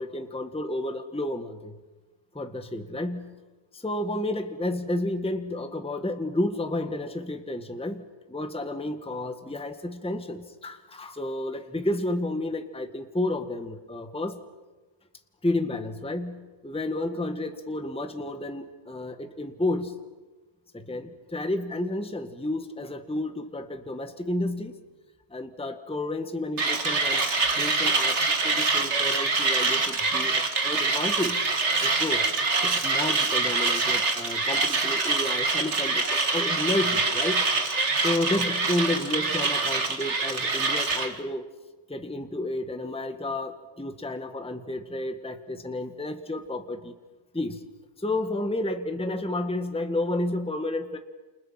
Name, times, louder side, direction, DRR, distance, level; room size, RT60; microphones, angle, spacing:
voice 1, 0.0-1.8 2.3-3.4 3.7-14.4 15.4-20.0 20.7-24.8 25.3-27.2 27.6-31.6 31.8-32.2 32.6-37.5 38.0-41.4 41.9-46.9 47.3-47.6 48.0-51.0, left 1 dB, 5° left, 6 dB, 1.5 m, -31 dB
Mechanisms, 26.6-41.1, right 3 dB, 50° right, 2.2 m, -25 dB
30.0 x 28.5 x 5.8 m, 1.2 s
omnidirectional pair, 1.6 m